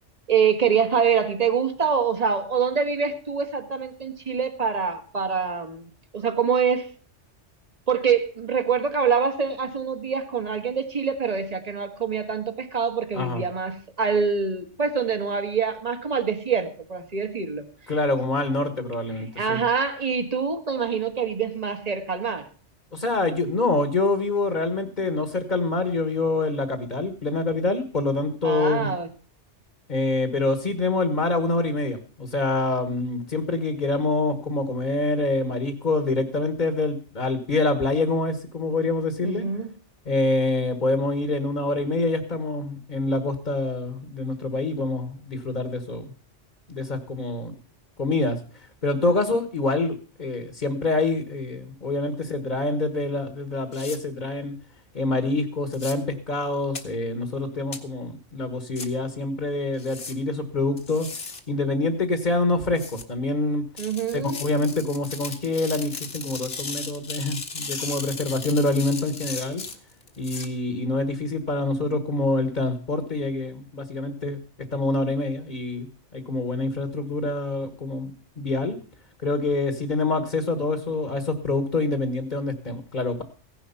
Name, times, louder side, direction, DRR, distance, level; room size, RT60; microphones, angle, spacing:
voice 1, 0.3-5.9 6.1-6.9 7.9-17.6 19.3-22.5 28.4-29.1 39.2-39.7 63.8-64.4, right 6 dB, 35° right, 8 dB, 1.6 m, -25 dB
voice 2, 13.1-13.4 17.9-19.6 22.9-28.9 29.9-39.5 40.0-46.0 46.7-47.5 48.0-48.4 48.8-54.5 54.9-61.1 61.5-63.6 64.1-69.6 70.2-74.4 74.7-78.8 79.2-83.2, left 2 dB, 40° left, 8 dB, 1.5 m, -26 dB
sound 1, 53.7-54.0 55.7-55.9 56.8-56.9 57.7-57.8 58.8-58.9 59.8-60.1 60.8-61.4 62.8-63.0 63.8-70.5, left 4 dB, 55° left, 1.8 m, -36 dB
16.0 x 10.5 x 5.6 m, 0.40 s
omnidirectional pair, 1.2 m